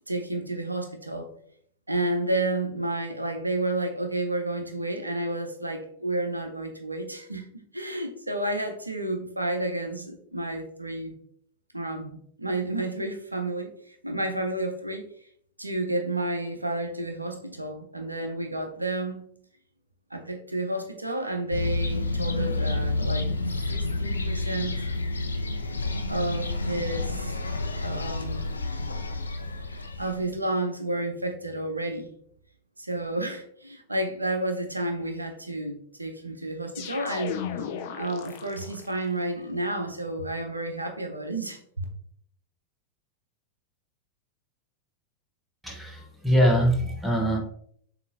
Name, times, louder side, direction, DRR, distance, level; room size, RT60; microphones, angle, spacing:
voice 1, 0.1-1.3 1.9-7.5 7.7-11.2 11.7-15.1 15.6-19.2 20.1-23.3 23.7-24.8 26.1-28.6 29.7-32.1 32.8-37.4 37.9-41.8, right 1 dB, 85° right, 5 dB, 0.6 m, -31 dB
sound 1, 21.5-30.3, left 2 dB, 75° left, 0.4 m, -29 dB
sound 2, 36.7-39.0, left 8 dB, 50° left, 0.7 m, -35 dB
voice 2, 45.6-47.4, equal, ahead, 0 dB, 1.1 m, -23 dB
6.7 x 2.8 x 2.6 m, 0.64 s
figure-of-eight pair, 90°, 0 cm